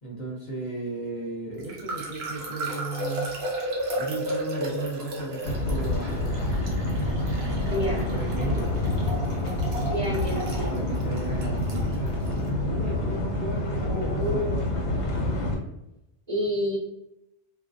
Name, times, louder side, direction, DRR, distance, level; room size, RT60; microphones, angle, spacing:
voice 1, 0.0-3.3 3.9-6.9 7.3-8.7 10.7-14.5, right 2 dB, 50° left, -4 dB, 0.7 m, -35 dB
sound 1, 1.6-12.4, right 1 dB, 70° right, 0.9 m, -34 dB
sound 2, 5.4-15.5, left 1 dB, 85° left, 1.0 m, -27 dB
voice 2, 7.7-8.0 9.9-10.7 13.8-14.7 15.6-15.7 16.3-16.8, equal, 35° right, -7 dB, 0.9 m, -29 dB
2.3 x 2.1 x 2.6 m, 0.87 s
omnidirectional pair, 1.1 m